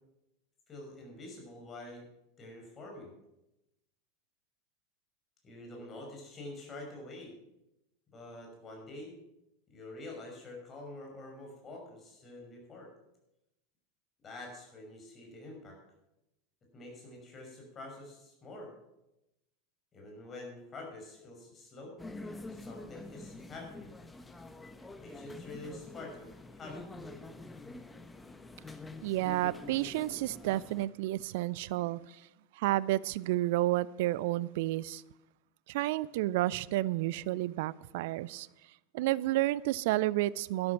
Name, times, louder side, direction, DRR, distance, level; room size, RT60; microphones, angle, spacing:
voice 1, 0.7-2.1 2.4-3.1 5.4-7.3 8.1-9.1 9.7-12.9 14.2-15.8 16.7-18.7 19.9-22.0 22.5-24.0 25.0-27.3, left 2 dB, 30° left, 5.9 m, -47 dB
sound 1, 22.0-30.9, left 2 dB, 15° left, 1.2 m, -47 dB
voice 2, 29.0-32.2 32.6-35.0 35.7-38.5 38.9-40.7, right 16 dB, 60° right, 0.4 m, -31 dB
12.5 x 12.5 x 5.9 m
figure-of-eight pair, 80°, 0 cm